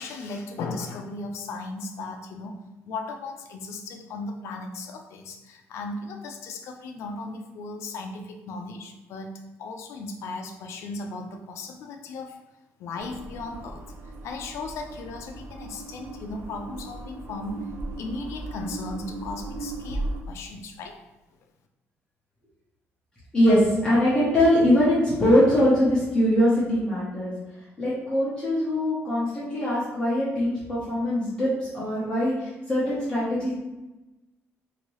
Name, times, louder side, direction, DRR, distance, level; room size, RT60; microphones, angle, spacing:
voice 1, 0.0-2.6 2.8-9.3 9.6-12.4 12.8-13.8 14.2-17.7 17.9-21.0, left 3 dB, 70° left, 4 dB, 0.5 m, -36 dB
sound 1, 13.0-20.2, right 2 dB, 60° right, 0.4 m, -37 dB
voice 2, 23.3-27.3 27.8-33.5, left 1 dB, 15° left, -10 dB, 0.9 m, -22 dB
2.8 x 2.7 x 3.1 m, 1.1 s
cardioid pair, 155°, 5 cm